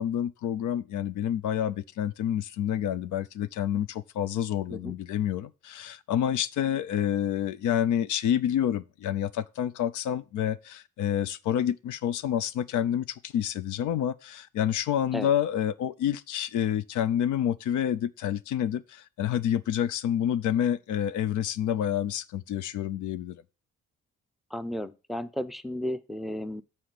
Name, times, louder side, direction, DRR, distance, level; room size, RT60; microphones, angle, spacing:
voice 1, 0.0-23.4, left 10 dB, 80° left, 0.6 m, -28 dB
voice 2, 24.5-26.6, left 1 dB, ahead, 0.5 m, -34 dB
7.7 x 4.3 x 6.6 m
cardioid pair, 90°, 30 cm